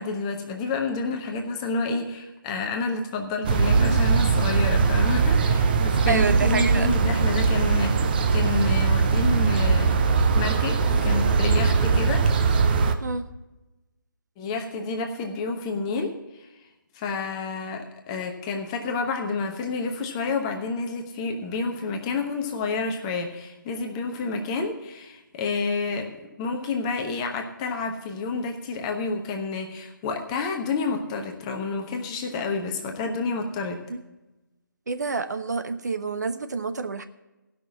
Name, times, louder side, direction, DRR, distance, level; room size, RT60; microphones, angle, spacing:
voice 1, 0.0-12.3 14.4-16.5 16.9-26.1 26.4-33.8, left 4 dB, 15° left, 3 dB, 1.0 m, -29 dB
sound 1, 3.4-12.9, right 5 dB, 25° right, 0.7 m, -21 dB
voice 2, 6.1-6.9 13.0-13.2 33.9-34.0 34.9-37.0, right 4 dB, 55° right, 10 dB, 0.8 m, -28 dB
15.0 x 6.1 x 7.1 m, 1.0 s
figure-of-eight pair, 150°, 11 cm